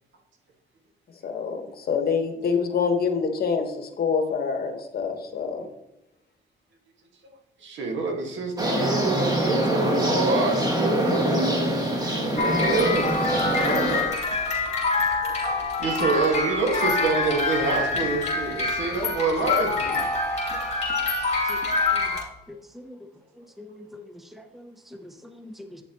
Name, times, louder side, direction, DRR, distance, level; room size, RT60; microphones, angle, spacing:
voice 1, 1.2-5.7, left 5 dB, 50° left, 5 dB, 1.3 m, -26 dB
voice 2, 7.6-11.5 12.2-13.9 15.4-20.1, right 3 dB, 70° right, 2 dB, 1.8 m, -27 dB
sound 1, 8.6-14.0, right 1 dB, 20° right, 1.8 m, -24 dB
sound 2, 12.4-22.2, left 3 dB, 35° left, 3.0 m, -26 dB
voice 3, 23.6-24.0 24.3-24.7 25.0-25.8, left 1 dB, ahead, 6 dB, 0.7 m, -44 dB
8.8 x 7.0 x 3.0 m, 0.90 s
cardioid pair, 90°, 20 cm